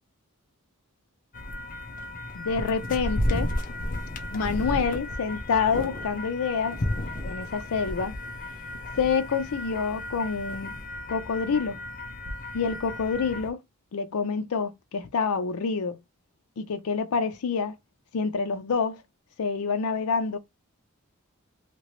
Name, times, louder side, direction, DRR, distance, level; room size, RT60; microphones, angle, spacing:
sound 1, 1.3-13.5, left 1 dB, 40° left, 0.7 m, -33 dB
voice 1, 2.3-3.5 4.3-6.8 7.2-8.1 9.0-10.8 11.1-11.8 12.5-13.6 13.9-16.0 16.6-17.8 18.1-19.0 19.4-20.4, left 5 dB, 90° left, 0.5 m, -27 dB
3.0 x 2.8 x 3.0 m
head